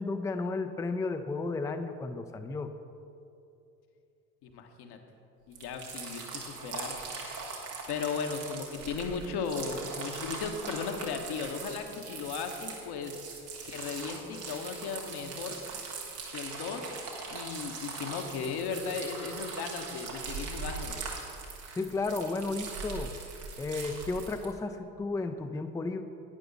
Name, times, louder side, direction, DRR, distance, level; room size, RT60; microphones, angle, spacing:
voice 1, 0.0-2.7 21.8-23.1 23.6-26.0, left 3 dB, 5° left, 8 dB, 0.5 m, -33 dB
voice 2, 4.4-5.0 5.5-7.4 7.9-13.2 13.6-15.6 16.3-17.0 17.3-21.0, left 5 dB, 55° left, 5 dB, 1.3 m, -36 dB
sound 1, 5.5-24.5, right 4 dB, 85° right, 1.6 m, -41 dB
11.5 x 9.2 x 4.0 m, 2.7 s
hypercardioid pair, 60°, 46 cm